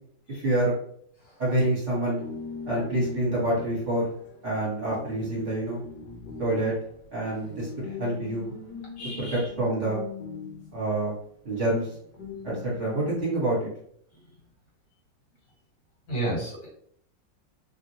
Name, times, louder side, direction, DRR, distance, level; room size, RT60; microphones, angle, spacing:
voice 1, 0.3-0.8 1.4-2.2 2.7-4.1 4.4-5.8 6.4-6.7 7.1-8.5 9.2-10.0 10.7-11.1 11.4-11.9 12.4-13.7, right 1 dB, 40° right, -6 dB, 1.5 m, -27 dB
sound 1, 2.2-11.1 11.8-13.2, left 5 dB, 65° left, 1.3 m, -41 dB
voice 2, 9.0-9.4 16.1-16.7, right 1 dB, 45° left, -4 dB, 1.6 m, -31 dB
3.2 x 2.5 x 2.7 m, 0.64 s
omnidirectional pair, 2.1 m